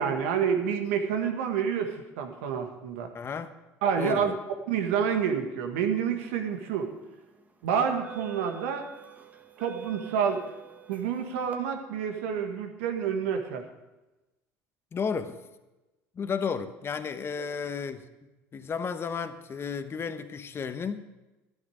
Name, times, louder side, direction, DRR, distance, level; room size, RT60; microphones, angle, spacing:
voice 1, 0.0-3.1 3.8-4.3 4.7-6.9 7.6-8.9 9.6-10.4 10.9-13.6 17.4-17.5, right 7 dB, 85° right, 5 dB, 1.7 m, -28 dB
voice 2, 3.1-3.5 4.0-4.3 14.9-15.4 16.2-18.0 18.5-21.0, left 6 dB, 35° left, 10 dB, 1.1 m, -33 dB
sound 1, 6.8-7.0 7.8-11.6, right 10 dB, 20° right, 1.4 m, -46 dB
12.5 x 11.5 x 5.0 m, 1.0 s
supercardioid pair, 85°, 7 cm